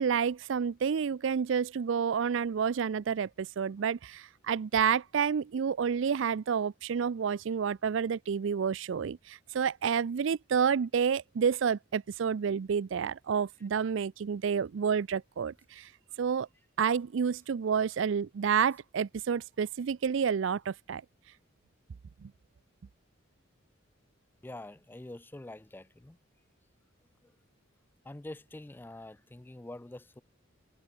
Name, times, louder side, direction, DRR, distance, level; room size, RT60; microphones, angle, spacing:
voice 1, 0.0-15.9 16.2-16.5 16.8-21.0 22.2-22.3, right 7 dB, 65° right, 0.4 m, -29 dB
voice 2, 24.4-26.2 28.0-30.2, left 1 dB, 10° left, 0.4 m, -45 dB
head